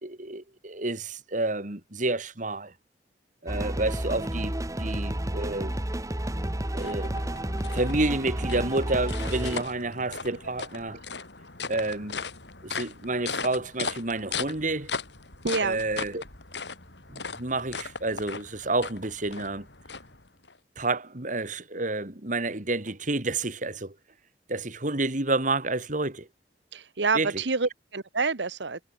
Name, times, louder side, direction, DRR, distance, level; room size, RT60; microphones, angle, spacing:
voice 1, 0.0-2.7 3.4-5.8 6.7-7.2 7.7-11.0 11.7-12.2 12.6-15.0 15.6-16.2 17.1-19.7 20.8-23.9 24.5-26.3 27.1-27.4, right 2 dB, 45° right, 2.8 m, -29 dB
sound 1, 3.5-9.6, right 1 dB, 20° right, 1.4 m, -31 dB
sound 2, 6.1-20.6, left 5 dB, 80° left, 6.1 m, -38 dB
voice 2, 15.4-15.8 26.7-28.8, right 4 dB, 85° right, 1.3 m, -27 dB
head